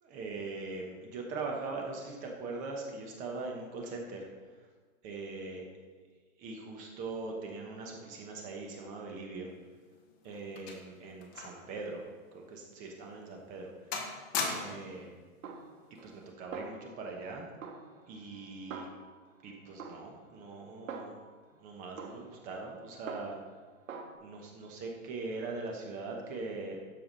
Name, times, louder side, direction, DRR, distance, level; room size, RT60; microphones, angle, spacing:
voice 1, 0.0-4.3 5.0-5.6 6.4-9.5 10.2-12.0 12.3-14.1 14.5-15.1 16.0-17.5 18.1-18.9 19.4-21.2 21.6-23.4 24.2-26.8, right 3 dB, 20° right, 1 dB, 1.0 m, -41 dB
sound 1, 9.6-11.7 12.0-12.2 12.8-13.0 13.4-13.7 13.9-15.0 16.0-16.2, left 4 dB, 20° left, 1.0 m, -38 dB
Snare drum, 15.4-16.3 16.5-17.3 17.6-19.4 19.8-21.5 22.0-23.6 23.9-24.2, right 5 dB, 70° right, 1.4 m, -46 dB
12.5 x 4.8 x 5.2 m, 1.4 s
hypercardioid pair, 155°, 41 cm